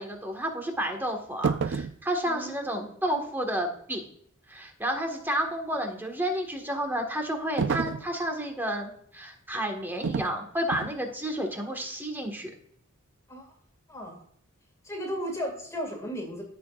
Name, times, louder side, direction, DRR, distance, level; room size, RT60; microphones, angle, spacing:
voice 1, 0.0-4.1 4.5-12.5, right 1 dB, 10° right, 3 dB, 1.5 m, -31 dB
sound 1, 1.4-2.0 7.6-8.1 10.0-10.4 10.7-11.0, right 5 dB, 55° right, 0.4 m, -29 dB
voice 2, 2.2-2.9 13.3-13.5 13.9-14.2 14.8-16.4, equal, 15° left, 1 dB, 2.1 m, -35 dB
15.5 x 6.0 x 2.4 m, 0.68 s
head